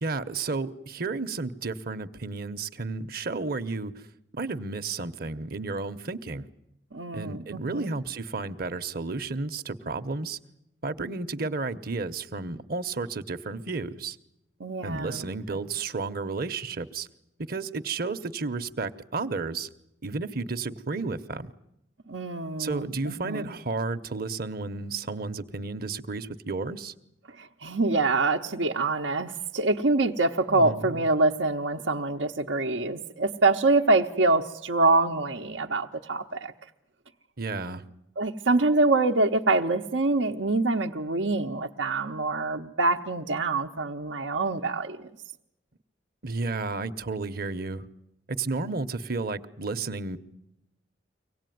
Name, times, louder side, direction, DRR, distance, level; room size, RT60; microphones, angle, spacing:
voice 1, 0.0-3.9 4.3-6.5 7.1-10.4 10.8-14.2 14.8-17.1 17.5-19.7 20.0-21.5 22.6-26.9 30.5-31.0 37.4-37.8 46.2-47.8 48.3-50.2, right 3 dB, 55° right, 11 dB, 1.0 m, -32 dB
voice 2, 6.9-7.9 14.6-15.6 22.1-23.5 27.4-36.7 38.2-45.1, right 3 dB, 85° right, -1 dB, 1.0 m, -25 dB
24.5 x 18.0 x 9.3 m, 0.84 s
head